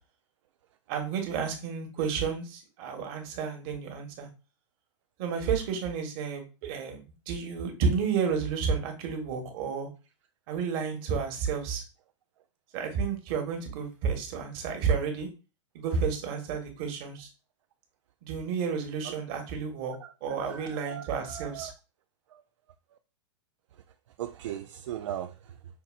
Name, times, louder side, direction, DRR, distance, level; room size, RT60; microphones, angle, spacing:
voice 1, 0.9-4.3 5.2-9.9 10.5-11.8 12.7-15.3 15.7-17.3 18.2-19.9 20.2-21.7, right 6 dB, 50° right, 1.4 m, -31 dB
voice 2, 20.0-21.7 22.3-22.4 24.2-25.5, right 11 dB, 75° right, 0.4 m, -39 dB
5.8 x 2.6 x 2.4 m
hypercardioid pair, 125°, 16 cm